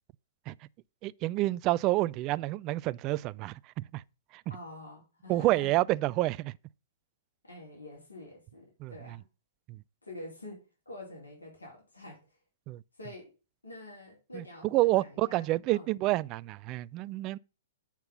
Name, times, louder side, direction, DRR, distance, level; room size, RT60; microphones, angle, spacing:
voice 1, 1.0-4.0 5.3-6.6 8.8-8.9 9.7-9.8 12.7-12.8 14.3-17.4, right 18 dB, 35° right, 0.3 m, -29 dB
voice 2, 4.5-5.8 7.4-9.2 10.0-12.2 13.0-13.3 13.6-15.9, left 1 dB, 80° left, 4.1 m, -47 dB
7.7 x 5.8 x 5.6 m
figure-of-eight pair, 110°, 0 cm